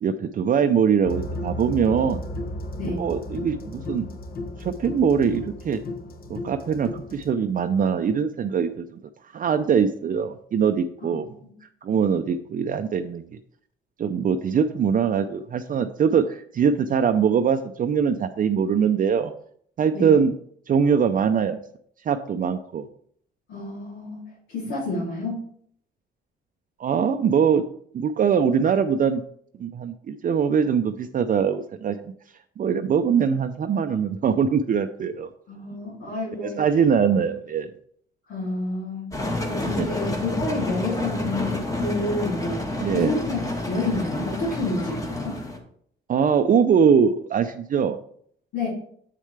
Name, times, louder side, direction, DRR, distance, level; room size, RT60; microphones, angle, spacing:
voice 1, 0.0-2.2 2.8-4.1 4.6-5.8 6.3-9.0 9.3-11.3 11.8-13.2 14.0-19.3 19.8-20.3 20.7-21.6 22.1-22.9 26.8-27.6 27.9-29.2 29.6-32.0 32.6-35.3 36.4-37.7 39.8-39.9 42.8-43.1 46.1-48.0, right 7 dB, 45° right, 7 dB, 0.5 m, -22 dB
sound 1, 1.0-7.3, left 1 dB, 50° left, 1.0 m, -34 dB
voice 2, 23.5-24.2 24.5-25.4 35.5-36.5 38.3-39.1 39.5-42.6 42.9-43.4 43.7-45.3 48.5-48.7, left 2 dB, 85° left, -9 dB, 3.0 m, -29 dB
sound 2, 39.1-45.6, left 2 dB, 15° left, 1.5 m, -29 dB
7.5 x 6.5 x 3.3 m, 0.64 s
cardioid pair, 90°, 20 cm